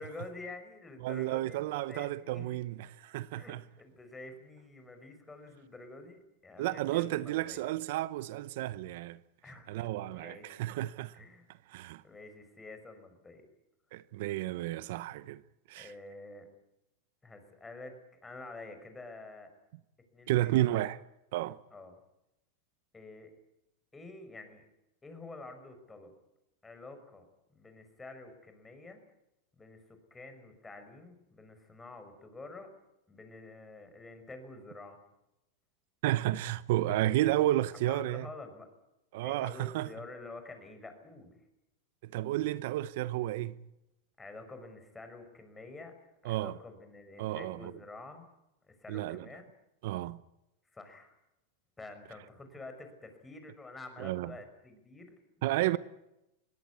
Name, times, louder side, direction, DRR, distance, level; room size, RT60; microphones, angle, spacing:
voice 1, 0.0-2.6 3.3-7.7 9.4-10.5 11.2-11.5 12.0-13.4 15.8-16.5 17.2-18.0 18.2-19.5 20.1-20.8 21.7-22.0 22.9-23.3 23.9-24.7 25.0-26.1 26.6-29.0 29.5-32.7 33.1-35.0 37.8-38.7 39.2-41.4 44.2-46.0 46.2-48.3 48.7-49.5 50.7-51.2 51.8-55.2 55.6-55.8, left 2 dB, 15° left, 5.6 m, -48 dB
voice 2, 1.0-3.6 6.6-9.2 9.7-11.1 11.7-12.0 13.9-15.4 15.7-15.9 20.3-21.0 21.3-21.6 36.0-38.3 39.1-39.9 42.0-43.6 46.2-46.6 47.2-47.7 48.9-49.3 49.8-50.2 54.0-54.3 55.4-55.8, right 15 dB, 65° right, 0.8 m, -32 dB
22.0 x 17.5 x 9.6 m
hypercardioid pair, 115°, 0 cm